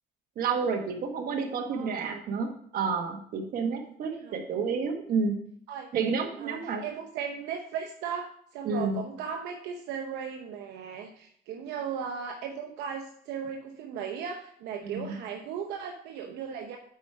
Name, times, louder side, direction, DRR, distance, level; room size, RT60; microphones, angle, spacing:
voice 1, 0.4-5.4 5.9-6.8 8.6-9.0 14.8-15.2, right 5 dB, 60° right, 4 dB, 1.4 m, -30 dB
voice 2, 1.7-2.2 4.1-4.4 5.7-5.9 6.4-16.8, right 7 dB, 85° right, 2 dB, 0.8 m, -37 dB
8.3 x 4.8 x 4.5 m, 0.63 s
cardioid pair, 110°, 17 cm